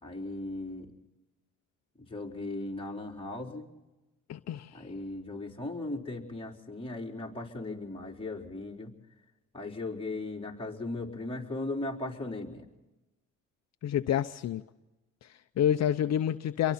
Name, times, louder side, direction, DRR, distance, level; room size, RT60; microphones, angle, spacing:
voice 1, 0.0-0.9 2.0-3.7 4.7-8.9 9.5-12.7, left 2 dB, 20° left, -1 dB, 4.3 m, -37 dB
voice 2, 4.3-4.8 13.8-14.6 15.2-16.7, left 10 dB, 60° left, 9 dB, 0.8 m, -29 dB
28.0 x 23.5 x 4.3 m, 1.0 s
cardioid pair, 90°, 30 cm